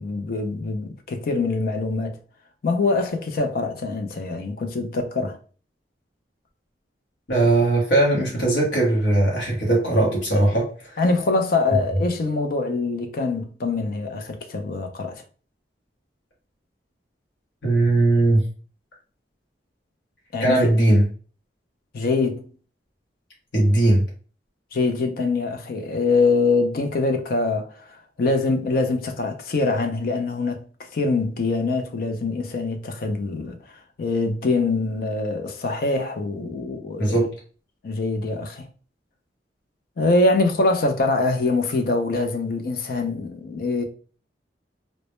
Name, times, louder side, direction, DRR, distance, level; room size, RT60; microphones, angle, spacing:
voice 1, 0.0-2.2 2.6-5.4 11.0-15.2 20.3-20.7 21.9-22.5 24.7-30.6 30.9-33.6 34.0-37.3 37.8-38.7 40.0-43.8, left 3 dB, 55° left, 0.4 m, -24 dB
voice 2, 7.3-11.0 17.6-18.4 20.4-21.1 23.5-24.0 37.0-37.3, right 2 dB, 85° left, 0.8 m, -19 dB
2.1 x 2.0 x 2.9 m
head